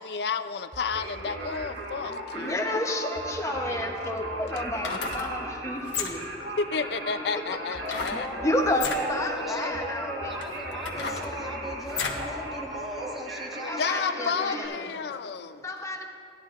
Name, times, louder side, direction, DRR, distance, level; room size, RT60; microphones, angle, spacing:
voice 1, 0.0-2.6 6.6-8.3 13.8-15.6, left 5 dB, 65° left, 10 dB, 0.4 m, -31 dB
sound 1, 0.7-2.0 3.2-6.9 7.7-9.0 9.7-13.7, right 1 dB, 30° right, 0.6 m, -47 dB
Singing, 0.8-14.6, right 1 dB, 80° right, 1.6 m, -37 dB
voice 2, 2.3-6.3 8.4-10.3 13.7-14.7 15.6-16.0, left 1 dB, 15° left, 2 dB, 0.8 m, -30 dB
sound 2, 3.5-3.6 4.7-5.3 5.8-6.4 7.9-8.2 8.7-9.0 9.8-9.9 10.4-12.3 12.7-12.8, left 5 dB, 80° left, 1.1 m, -33 dB
voice 3, 8.1-15.1, equal, ahead, -2 dB, 1.2 m, -39 dB
16.5 x 11.5 x 2.5 m, 2.5 s
head